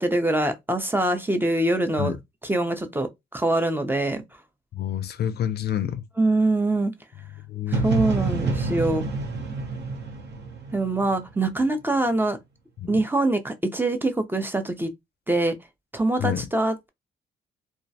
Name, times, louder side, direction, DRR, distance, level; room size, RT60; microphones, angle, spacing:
voice 1, 0.0-2.1 2.4-4.2 6.2-6.9 7.7-9.1 10.7-12.4 12.9-14.9 15.3-15.5 15.9-16.9, right 2 dB, 10° right, 0.4 m, -24 dB
voice 2, 4.7-6.0 7.5-7.9 12.8-12.9 16.2-16.5, left 10 dB, 55° left, 0.4 m, -28 dB
sound 1, 7.7-11.6, right 4 dB, 60° right, 0.8 m, -28 dB
2.3 x 2.0 x 2.7 m
cardioid pair, 90°, 20 cm